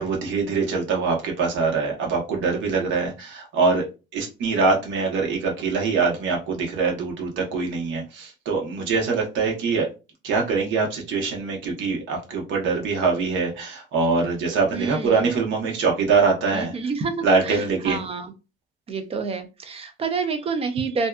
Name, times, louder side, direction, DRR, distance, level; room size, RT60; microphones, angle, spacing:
voice 1, 0.0-3.9 4.1-9.9 10.2-16.7 17.2-18.0, right 4 dB, 70° right, 0 dB, 0.9 m, -23 dB
voice 2, 14.7-15.3 16.5-18.3 18.9-21.1, right 4 dB, 30° right, 8 dB, 0.4 m, -28 dB
2.6 x 2.3 x 2.2 m, 0.29 s
cardioid pair, 135°, 20 cm